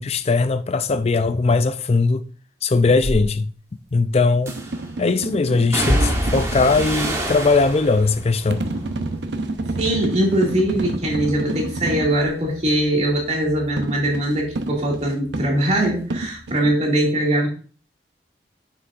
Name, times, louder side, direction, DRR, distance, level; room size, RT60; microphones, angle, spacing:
voice 1, 0.0-2.3 2.6-3.5 3.9-4.5 5.0-8.7, left 3 dB, 35° left, 0.4 m, -19 dB
sound 1, 3.0-3.2 4.5-4.9 5.7-10.0 10.3-10.9 11.3-14.6 14.8-16.0 16.2-16.4, equal, 15° right, 1.4 m, -28 dB
sound 2, 4.3-7.2 8.5-12.2 13.8-16.7, right 2 dB, 80° right, 0.8 m, -29 dB
voice 2, 9.8-17.5, right 1 dB, 40° right, 2.3 m, -21 dB
7.8 x 6.2 x 2.5 m
head